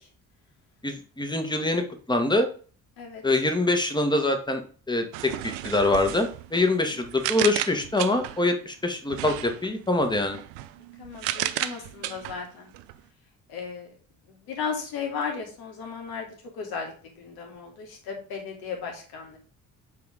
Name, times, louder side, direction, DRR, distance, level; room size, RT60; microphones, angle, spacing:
voice 1, 0.8-2.5 3.2-4.6 4.9-10.4, left 2 dB, 10° left, 5 dB, 1.6 m, -24 dB
sound 1, 5.1-8.5 9.1-13.0, right 14 dB, 60° right, 0.7 m, -34 dB
voice 2, 11.0-12.7 13.5-13.9 14.5-16.3 16.5-16.9 17.2-19.4, left 5 dB, 60° left, 2 dB, 2.1 m, -35 dB
7.8 x 4.6 x 3.7 m, 0.40 s
figure-of-eight pair, 45°, 42 cm